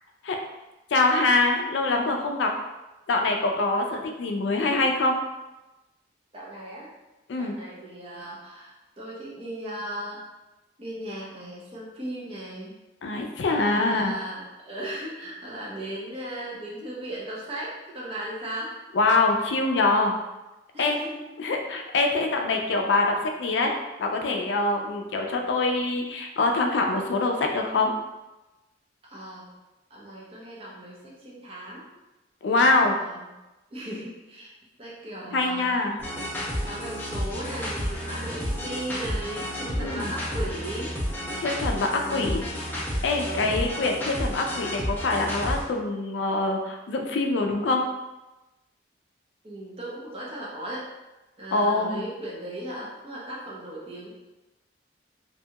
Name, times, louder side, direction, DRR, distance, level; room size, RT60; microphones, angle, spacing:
voice 1, 0.9-2.5 3.1-5.2 7.3-7.5 13.0-14.1 18.9-20.1 20.8-21.0 21.4-23.7 24.0-27.9 32.4-33.0 35.3-36.0 39.8-40.1 41.4-42.6 43.0-47.8 51.5-52.0, left 3 dB, 75° left, 3 dB, 0.4 m, -24 dB
voice 2, 6.3-6.9 7.4-10.2 10.8-12.8 13.5-18.7 20.7-21.6 29.0-29.5 29.9-31.9 32.5-33.3 33.7-34.5 34.8-35.7 36.6-40.9 41.8-42.5 43.2-43.5 49.4-50.8 51.4-54.1, right 1 dB, 30° right, -5 dB, 0.6 m, -37 dB
sound 1, 36.0-45.6, equal, 10° left, 0.5 m, -31 dB
2.6 x 2.3 x 2.8 m, 1.0 s
head